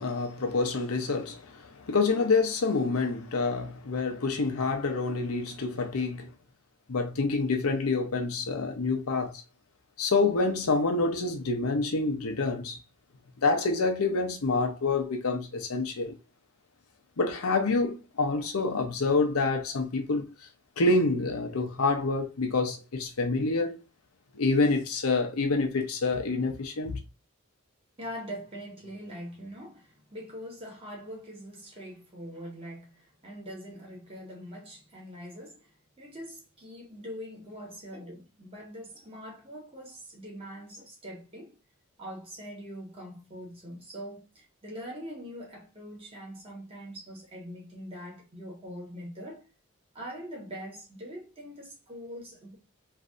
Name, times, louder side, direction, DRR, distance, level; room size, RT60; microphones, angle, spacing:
voice 1, 0.0-6.3 6.9-9.4 10.0-12.8 13.4-16.2 17.2-20.3 20.8-23.8 24.3-27.0, left 3 dB, 90° left, 0.7 m, -27 dB
voice 2, 28.0-35.7 36.0-41.6 42.0-49.5 49.9-52.6, equal, 25° right, 1.2 m, -43 dB
3.2 x 2.6 x 2.5 m
head